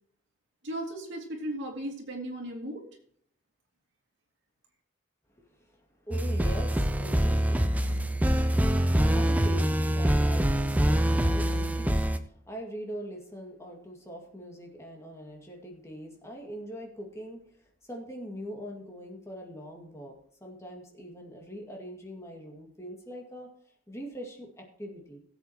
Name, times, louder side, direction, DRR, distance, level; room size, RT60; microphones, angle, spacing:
voice 1, 0.6-2.8, right 1 dB, 65° right, 0 dB, 3.0 m, -36 dB
voice 2, 5.6-7.7 9.1-17.4 17.8-23.5 23.9-25.2, equal, 15° left, 0 dB, 2.2 m, -42 dB
sound 1, 6.1-12.2, right 1 dB, 10° right, 0.5 m, -25 dB
18.0 x 8.1 x 3.0 m, 0.62 s
head